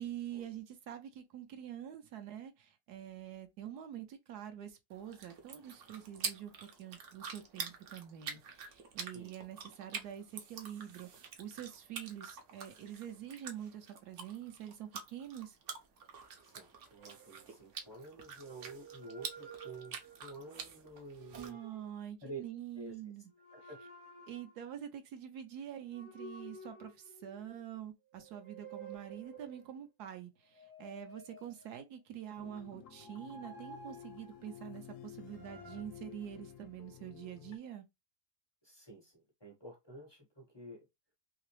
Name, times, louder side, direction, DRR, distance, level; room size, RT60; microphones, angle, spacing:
voice 1, 0.0-15.6 21.3-23.3 23.6-23.7 24.3-37.9, right 10 dB, 75° right, 1.2 m, -46 dB
sound 1, 4.9-21.5, right 6 dB, 60° right, 0.9 m, -47 dB
voice 2, 16.4-21.6 22.2-22.4 22.7-22.9 23.5-23.8 38.6-40.9, right 2 dB, 30° left, 0.5 m, -50 dB
sound 2, 17.0-17.9 18.4-20.4 21.0-22.0 23.3-24.7 25.9-27.6 28.1-29.8 30.4-32.0 32.9-34.7 35.2-35.8, right 3 dB, 35° right, 0.5 m, -53 dB
sound 3, 32.4-37.6, left 10 dB, 65° left, 0.8 m, -52 dB
3.2 x 2.9 x 3.1 m
omnidirectional pair, 1.7 m